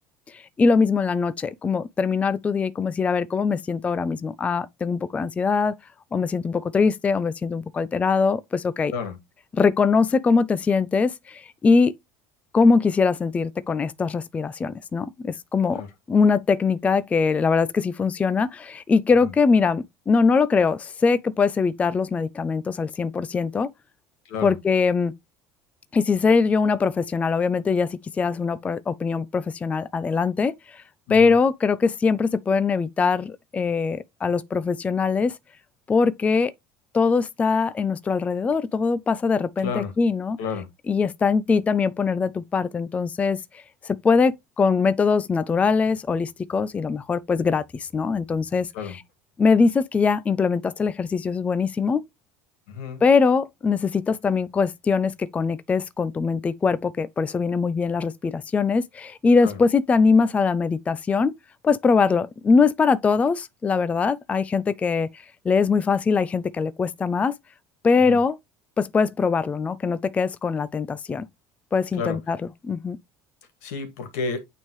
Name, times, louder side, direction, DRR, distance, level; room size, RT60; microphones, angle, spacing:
voice 1, 0.3-5.8 6.1-8.9 9.5-11.9 12.5-15.8 16.1-23.7 24.4-25.1 25.9-30.8 31.1-35.4 35.9-36.5 36.9-40.4 40.9-48.7 49.4-52.0 53.0-61.3 61.6-65.1 65.4-67.3 67.8-68.4 68.8-71.3 71.7-72.4 72.6-73.0, left 5 dB, 20° left, 0.4 m, -22 dB
voice 2, 24.3-24.6 31.1-31.4 39.6-39.9 40.4-40.7 48.7-49.0 52.7-53.0 59.4-59.6 68.0-68.2 71.9-72.2 73.6-74.4, left 5 dB, 85° left, 2.1 m, -31 dB
9.0 x 3.6 x 3.1 m
supercardioid pair, 125°, 8 cm